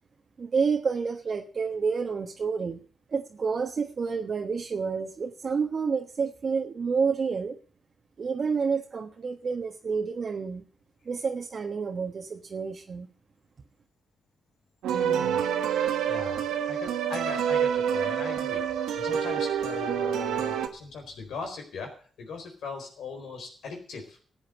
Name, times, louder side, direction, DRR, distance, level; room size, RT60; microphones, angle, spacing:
voice 1, 0.4-2.8 3.1-7.5 8.2-10.6 11.0-13.1, right 5 dB, 55° right, 3 dB, 1.3 m, -29 dB
sound 1, 14.8-20.7, right 9 dB, 85° right, 1.4 m, -27 dB
voice 2, 14.9-15.5 16.1-21.9 22.2-24.2, left 4 dB, 75° left, 3 dB, 4.3 m, -39 dB
13.5 x 8.0 x 8.1 m, 0.43 s
supercardioid pair, 45°, 0 cm